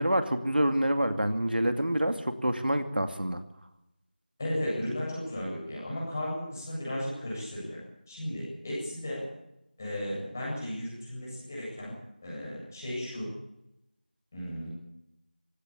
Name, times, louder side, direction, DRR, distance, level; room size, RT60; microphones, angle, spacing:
voice 1, 0.0-3.4, right 1 dB, 85° right, 7 dB, 2.5 m, -27 dB
voice 2, 4.4-7.8 8.1-9.2 9.8-12.0 12.2-13.3 14.3-14.7, left 1 dB, 15° left, -4 dB, 7.9 m, -35 dB
19.0 x 16.5 x 8.8 m, 0.84 s
figure-of-eight pair, 175°, 5 cm